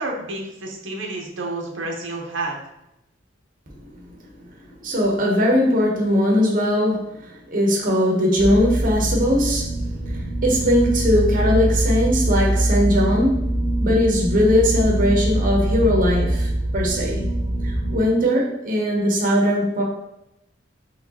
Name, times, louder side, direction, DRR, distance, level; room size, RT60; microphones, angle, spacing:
voice 1, 0.0-2.6, right 2 dB, 85° right, -1 dB, 0.9 m, -29 dB
voice 2, 4.6-9.7 10.0-17.2 17.6-19.8, left 1 dB, 45° right, -2 dB, 0.8 m, -20 dB
sound 1, 8.4-18.0, right 1 dB, 65° left, 0.9 m, -23 dB
4.6 x 3.2 x 2.8 m, 0.86 s
head